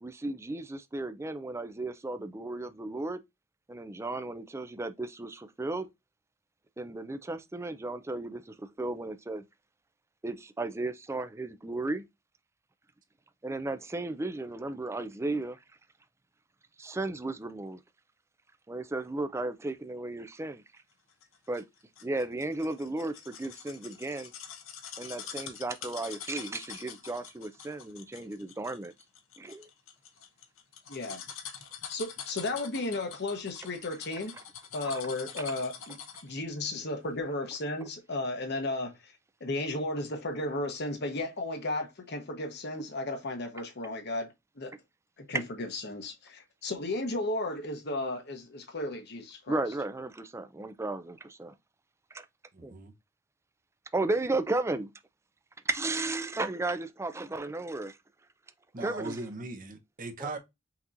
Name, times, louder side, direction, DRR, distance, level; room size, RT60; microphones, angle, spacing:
voice 1, 0.0-3.2 3.7-5.9 6.8-9.4 10.2-12.0 13.4-15.6 16.8-17.8 18.7-20.6 21.5-21.6 22.0-24.3 25.0-28.9 29.4-29.7 34.9-35.0 49.5-51.5 52.6-52.7 53.9-54.9 55.7-58.0 58.8-59.2 60.2-60.3, right 2 dB, 15° right, 0.4 m, -34 dB
sound 1, 21.2-36.4 36.8-36.9, left 8 dB, 80° left, 0.9 m, -45 dB
voice 2, 30.9-31.2 31.9-34.3 34.7-36.0 36.2-39.1 39.4-44.3 44.6-44.7 45.2-49.6, left 2 dB, 55° left, 1.0 m, -34 dB
voice 3, 52.5-52.9 58.7-60.4, right 3 dB, 45° right, 0.9 m, -39 dB
5.8 x 2.9 x 2.5 m
head